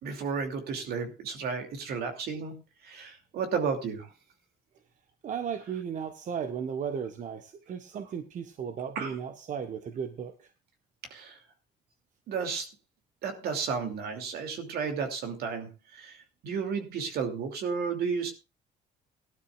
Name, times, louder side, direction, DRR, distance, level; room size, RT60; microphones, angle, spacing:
voice 1, 0.0-2.6 2.8-4.1 8.9-9.1 11.1-11.4 12.3-12.7 13.2-18.3, right 5 dB, 70° right, 5 dB, 2.8 m, -33 dB
voice 2, 5.2-10.5, right 7 dB, 50° right, 7 dB, 1.2 m, -35 dB
18.5 x 12.0 x 2.5 m, 0.28 s
cardioid pair, 110°, 17 cm